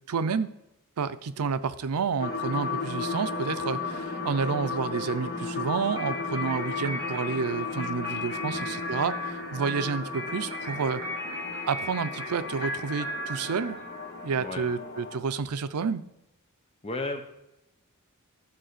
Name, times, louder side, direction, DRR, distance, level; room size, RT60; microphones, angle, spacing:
voice 1, 0.1-0.5 1.0-11.0 11.7-13.8 14.2-16.0, right 5 dB, 85° right, 13 dB, 0.5 m, -30 dB
sound 1, 2.2-15.2, left 4 dB, 45° left, 1.5 m, -35 dB
sound 2, 5.9-14.2, equal, 25° right, 3.5 m, -37 dB
voice 2, 8.5-8.8 14.4-14.7 16.8-17.2, left 2 dB, 25° left, 5 dB, 0.6 m, -34 dB
10.5 x 4.0 x 6.6 m, 0.89 s
head